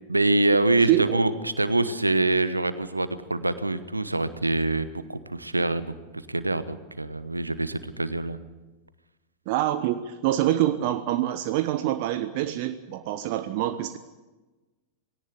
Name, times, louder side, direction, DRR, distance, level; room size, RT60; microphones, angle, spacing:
voice 1, 0.1-5.9 6.3-8.4, right 2 dB, 85° right, 14 dB, 1.0 m, -25 dB
voice 2, 0.9-1.2 9.5-14.0, right 13 dB, 45° right, 10 dB, 0.9 m, -25 dB
20.0 x 17.5 x 8.3 m, 1.2 s
figure-of-eight pair, 90°, 0 cm